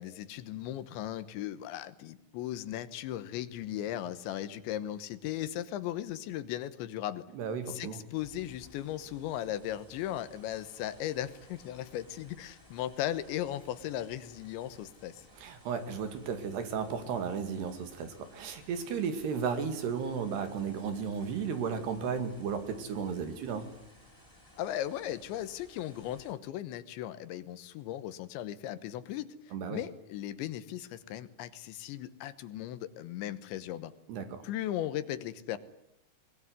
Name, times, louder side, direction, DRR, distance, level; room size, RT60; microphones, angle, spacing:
voice 1, 0.0-7.2 7.7-15.2 24.6-33.9 34.4-35.6, left 12 dB, 75° left, 14 dB, 3.3 m, -37 dB
voice 2, 7.3-8.0 15.4-23.7 29.5-29.8 34.1-34.4, right 6 dB, 65° right, 9 dB, 4.0 m, -34 dB
sound 1, 8.1-26.3, left 1 dB, 5° right, 6.3 m, -58 dB
23.5 x 20.5 x 9.6 m, 0.83 s
omnidirectional pair, 5.4 m